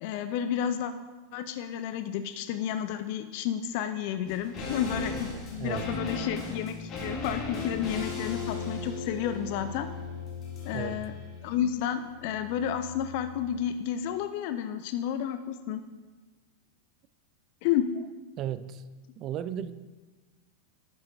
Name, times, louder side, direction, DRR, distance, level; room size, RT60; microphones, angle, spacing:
voice 1, 0.0-0.9 1.3-9.9 10.6-11.1 11.4-15.8 17.6-17.9, left 9 dB, 45° left, 10 dB, 0.4 m, -31 dB
sound 1, 4.3-13.6 13.9-14.0, left 4 dB, 30° left, 2.4 m, -37 dB
voice 2, 5.6-5.9 10.7-11.1 18.4-18.8 19.2-19.7, right 10 dB, 35° right, 14 dB, 0.4 m, -35 dB
11.5 x 7.5 x 3.0 m, 1.3 s
figure-of-eight pair, 90°, 0 cm